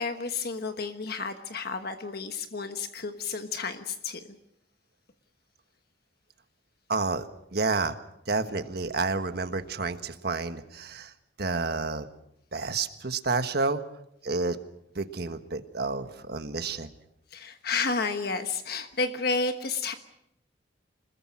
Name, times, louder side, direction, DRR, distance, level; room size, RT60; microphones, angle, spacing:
voice 1, 0.0-4.2 17.3-19.9, left 4 dB, 55° left, 7 dB, 1.3 m, -31 dB
voice 2, 6.9-8.0 8.3-12.1 12.5-13.8 14.2-14.6 14.9-16.9, right 3 dB, 60° right, 9 dB, 1.4 m, -30 dB
26.0 x 21.0 x 6.2 m, 0.80 s
head